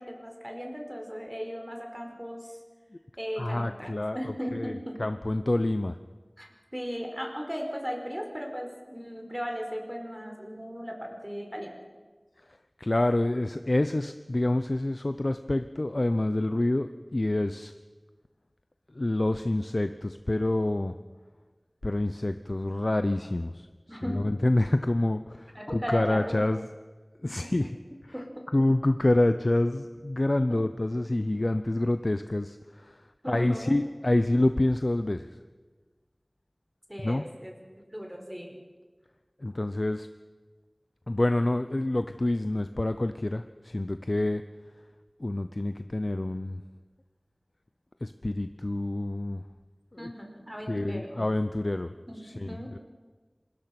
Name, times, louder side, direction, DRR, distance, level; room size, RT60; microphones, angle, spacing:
voice 1, 0.0-2.5 3.2-5.0 6.4-11.8 23.9-24.3 25.5-26.4 27.2-27.7 28.1-28.4 33.2-33.8 36.9-37.6 37.9-38.6 50.0-51.2 52.1-52.8, equal, 10° right, 2 dB, 4.9 m, -37 dB
voice 2, 3.4-4.2 4.5-4.7 5.0-6.0 12.8-17.7 19.0-20.9 21.8-23.7 24.1-26.6 27.2-27.7 28.5-33.0 33.3-35.3 37.0-37.2 39.4-40.1 41.1-44.4 45.2-46.6 48.0-49.4 50.0-50.1 50.7-51.9 52.2-52.8, left 1 dB, 60° left, 10 dB, 0.8 m, -27 dB
26.5 x 21.5 x 6.1 m, 1.4 s
wide cardioid pair, 40°, 0 cm